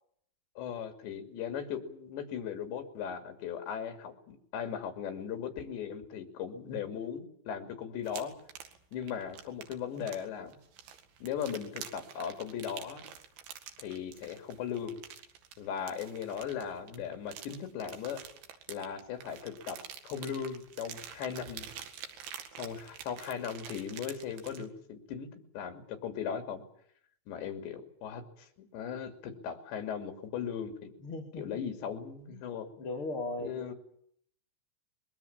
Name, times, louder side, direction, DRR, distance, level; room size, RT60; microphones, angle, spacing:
voice 1, 0.6-8.3 8.9-10.6 11.2-13.0 13.8-15.0 15.6-18.2 18.7-21.7 22.6-26.6 27.3-30.9 31.4-32.7 33.4-33.7, left 8 dB, 65° left, 6 dB, 4.9 m, -38 dB
sound 1, 8.1-24.7, right 8 dB, 70° right, 4.2 m, -48 dB
voice 2, 31.0-31.4 32.3-32.4 32.8-33.7, left 2 dB, 35° left, 0 dB, 2.9 m, -38 dB
24.0 x 22.0 x 7.3 m, 0.66 s
omnidirectional pair, 5.6 m